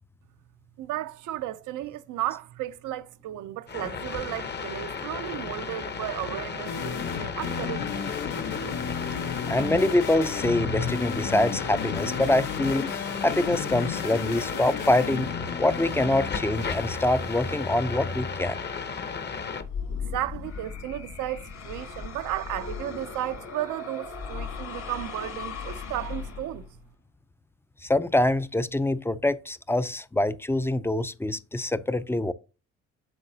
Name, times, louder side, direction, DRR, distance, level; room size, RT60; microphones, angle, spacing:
voice 1, 0.8-7.9 20.1-26.7, right 14 dB, 85° right, 0.6 m, -34 dB
sound 1, 3.7-19.6, left 5 dB, 35° left, 0.8 m, -34 dB
sound 2, 6.7-18.2, left 7 dB, 85° left, 1.0 m, -34 dB
voice 2, 9.5-15.3 15.6-18.6 27.8-32.3, left 1 dB, 10° left, 0.3 m, -25 dB
sound 3, 19.6-26.8, left 6 dB, 65° left, 3.0 m, -37 dB
7.9 x 5.8 x 2.7 m
cardioid pair, 90°, 30 cm